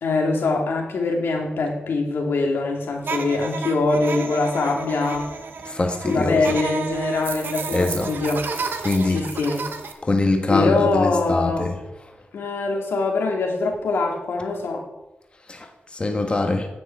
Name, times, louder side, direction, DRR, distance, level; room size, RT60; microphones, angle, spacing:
voice 1, 0.0-5.3 6.0-8.5 9.1-9.7 10.5-11.7 12.3-14.9, left 3 dB, 85° left, 1 dB, 2.4 m, -23 dB
sound 1, 3.0-9.9, right 4 dB, 65° right, 1.3 m, -31 dB
voice 2, 5.6-6.4 7.7-8.1 8.8-9.2 10.0-11.7 15.5-15.7 15.9-16.7, left 2 dB, 30° left, 3 dB, 1.4 m, -22 dB
10.5 x 6.0 x 8.4 m, 0.98 s
wide cardioid pair, 100°, 4 cm